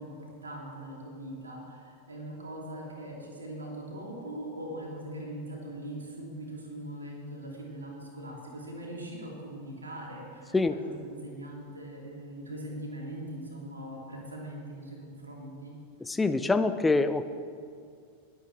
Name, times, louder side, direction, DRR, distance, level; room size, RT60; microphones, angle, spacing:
voice 1, 0.0-10.6 10.8-15.7, right 1 dB, 75° right, -2 dB, 2.7 m, -41 dB
voice 2, 16.0-17.2, left 3 dB, 10° left, 11 dB, 0.6 m, -25 dB
21.5 x 8.3 x 3.2 m, 2.3 s
figure-of-eight pair, 90°, 0 cm